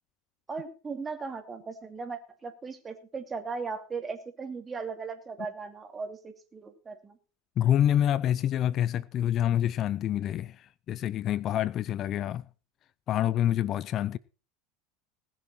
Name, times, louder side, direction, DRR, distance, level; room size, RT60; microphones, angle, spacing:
voice 1, 0.5-7.2, right 4 dB, 20° right, 2.7 m, -38 dB
voice 2, 7.6-12.5 13.1-14.2, left 11 dB, 45° left, 0.6 m, -27 dB
19.5 x 7.6 x 4.4 m
supercardioid pair, 110°, 0 cm